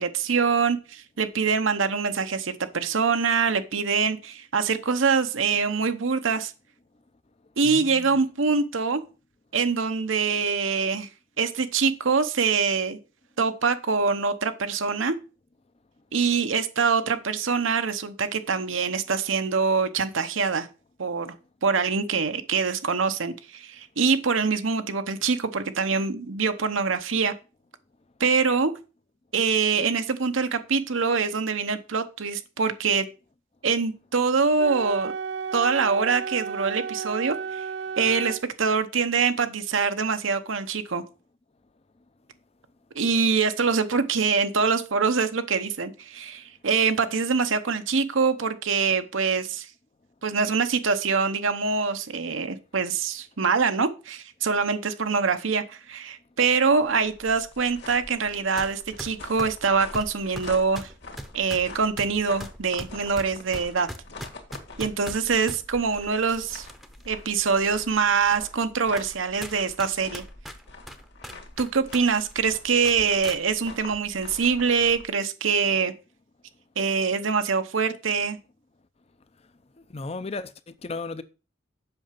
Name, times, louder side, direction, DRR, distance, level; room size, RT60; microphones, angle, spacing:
voice 1, 0.0-6.5 7.6-9.0 9.5-11.1 11.4-13.0 13.4-15.1 16.1-20.7 21.0-21.4 21.6-27.3 28.2-28.7 29.3-33.1 33.6-35.1 35.5-37.6 38.0-41.0 42.9-49.7 50.2-60.9 61.3-63.9 64.8-66.7 67.1-70.2 71.6-75.9 76.8-78.4, right 5 dB, 80° right, 0.9 m, -24 dB
voice 2, 7.6-8.2 79.8-81.2, left 3 dB, 30° left, 0.6 m, -35 dB
Wind instrument woodwind instrument, 34.6-38.4, right 6 dB, 60° right, 0.4 m, -33 dB
sound 1, 56.7-75.1, left 3 dB, 60° left, 2.1 m, -45 dB
sound 2, 58.6-58.7 59.0-65.6 66.2-67.0 67.4-67.5 68.2-68.3 69.0-69.1 69.4-72.0 72.3-72.4 72.8-73.4, equal, ahead, 0.8 m, -39 dB
7.8 x 5.8 x 5.9 m
head